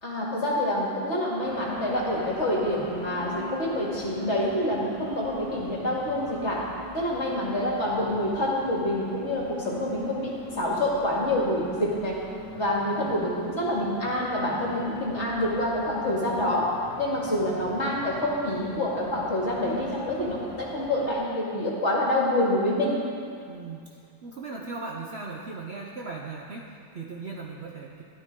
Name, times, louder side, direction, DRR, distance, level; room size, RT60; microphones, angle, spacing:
voice 1, 0.0-6.6 6.9-10.3 10.6-12.2 12.5-16.7 17.0-23.0 24.6-24.7, left 1 dB, 40° left, -4 dB, 2.4 m, -27 dB
sound 1, 1.4-21.1, right 1 dB, 75° right, 3.7 m, -42 dB
voice 2, 23.5-28.0, right 3 dB, 50° right, -1 dB, 0.8 m, -38 dB
13.5 x 12.5 x 3.7 m, 2.4 s
omnidirectional pair, 1.8 m